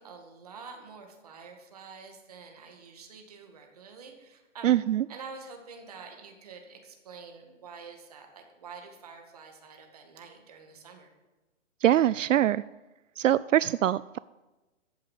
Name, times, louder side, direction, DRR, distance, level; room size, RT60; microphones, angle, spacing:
voice 1, 0.0-4.7 5.1-11.1, right 5 dB, 30° right, 3 dB, 2.0 m, -47 dB
voice 2, 4.6-5.0 11.8-12.6 13.2-14.2, right 12 dB, 80° right, 18 dB, 0.5 m, -23 dB
14.0 x 7.8 x 8.2 m, 1.1 s
hypercardioid pair, 180°, 38 cm